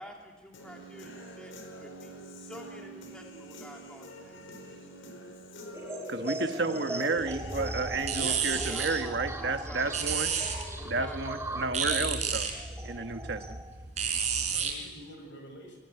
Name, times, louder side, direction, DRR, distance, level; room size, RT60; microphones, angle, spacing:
voice 1, 0.0-2.1 2.4-4.4 8.2-10.1 10.8-11.5, equal, 5° left, 0 dB, 3.1 m, -48 dB
Human voice / Guitar, 0.5-8.5, right 1 dB, 85° left, 4.5 m, -47 dB
sound 1, 5.7-13.8, right 1 dB, 15° right, 2.0 m, -40 dB
voice 2, 6.1-10.3 10.8-12.5 12.8-13.6, right 3 dB, 60° right, 8 dB, 1.3 m, -32 dB
voice 3, 6.7-7.5 11.5-11.9 14.3-15.8, left 1 dB, 65° left, 3 dB, 7.6 m, -48 dB
sound 2, 7.2-14.7, right 6 dB, 35° right, 4.0 m, -33 dB
23.0 x 19.0 x 9.5 m, 1.2 s
head